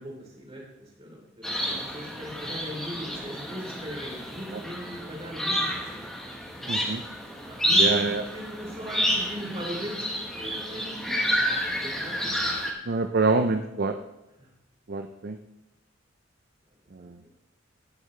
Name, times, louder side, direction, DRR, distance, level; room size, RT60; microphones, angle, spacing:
voice 1, 0.0-6.1 7.5-12.4 14.4-14.5 17.0-17.3, equal, 30° right, -3 dB, 3.4 m, -39 dB
sound 1, 1.4-12.7, equal, ahead, 1.3 m, -29 dB
voice 2, 6.7-7.0 7.7-8.2 12.9-14.0 14.9-15.4 16.9-17.2, right 3 dB, 50° right, 7 dB, 0.5 m, -26 dB
17.0 x 6.6 x 3.3 m, 0.93 s
head